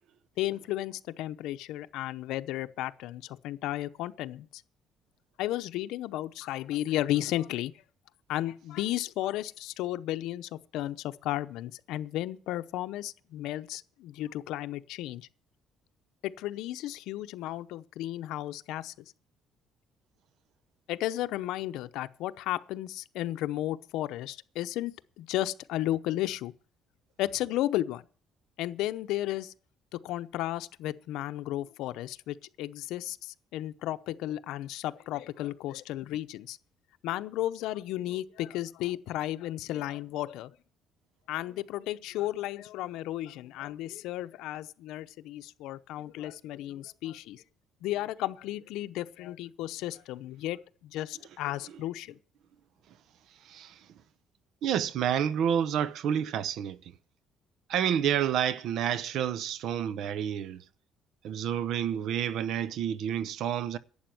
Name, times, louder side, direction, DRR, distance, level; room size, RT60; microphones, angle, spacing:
voice 1, 0.4-4.6 5.4-7.7 8.3-15.3 16.2-18.9 20.9-26.5 27.2-28.0 28.6-29.5 29.9-36.6 37.0-40.5 41.3-47.4 47.8-52.2, left 14 dB, 80° left, 0.7 m, -34 dB
voice 2, 54.6-56.8 57.7-60.6 61.2-63.8, right 9 dB, 60° right, 0.7 m, -29 dB
11.5 x 8.6 x 7.7 m
cardioid pair, 145°, 0 cm